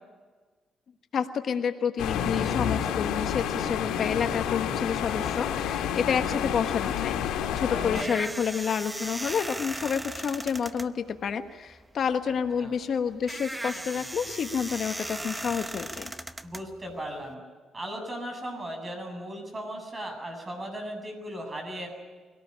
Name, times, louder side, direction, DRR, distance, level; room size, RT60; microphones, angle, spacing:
voice 1, 1.1-16.1, left 7 dB, 55° left, 7 dB, 1.3 m, -29 dB
sound 1, 2.0-8.0, left 8 dB, 85° left, 2.6 m, -29 dB
sound 2, 7.4-17.3, right 1 dB, 10° right, 0.9 m, -38 dB
voice 2, 7.7-8.2 12.3-12.7 16.4-17.4 17.7-21.9, right 1 dB, 25° right, 4 dB, 7.7 m, -37 dB
24.0 x 18.0 x 9.9 m, 1.4 s
cardioid pair, 90°, 0 cm